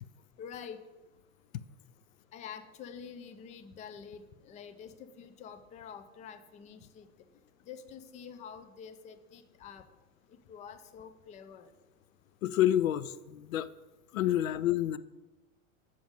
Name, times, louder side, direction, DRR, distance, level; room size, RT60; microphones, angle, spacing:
voice 1, 0.4-0.8 2.3-7.1 7.7-9.8 10.3-11.7, left 7 dB, 20° left, 9 dB, 0.4 m, -47 dB
voice 2, 12.4-13.7 14.1-15.0, left 12 dB, 90° left, 17 dB, 0.5 m, -28 dB
8.7 x 6.3 x 3.6 m, 1.1 s
hypercardioid pair, 120°, 40 cm